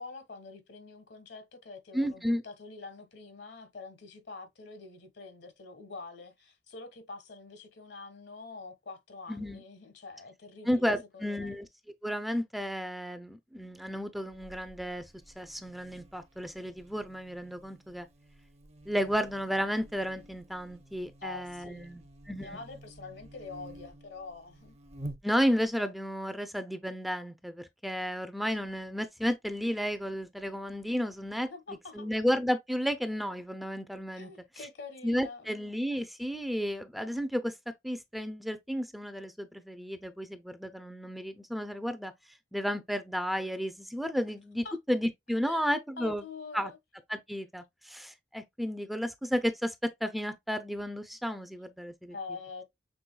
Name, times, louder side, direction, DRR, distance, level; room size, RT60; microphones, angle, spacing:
voice 1, 0.0-11.5 21.2-21.9 22.4-24.7 31.5-32.1 34.1-35.6 44.6-44.8 45.4-45.7 46.0-46.8 52.1-52.6, left 4 dB, 70° left, 1.4 m, -45 dB
voice 2, 1.9-2.4 9.3-9.6 10.7-11.7 12.0-15.0 15.4-18.1 18.9-22.6 25.2-31.5 31.9-34.3 35.0-37.5 37.8-42.1 42.5-46.2 46.5-46.7 47.1-52.1, equal, ahead, 0.4 m, -32 dB
Buzz, 14.3-25.7, right 1 dB, 40° right, 0.7 m, -50 dB
6.1 x 3.5 x 2.2 m
head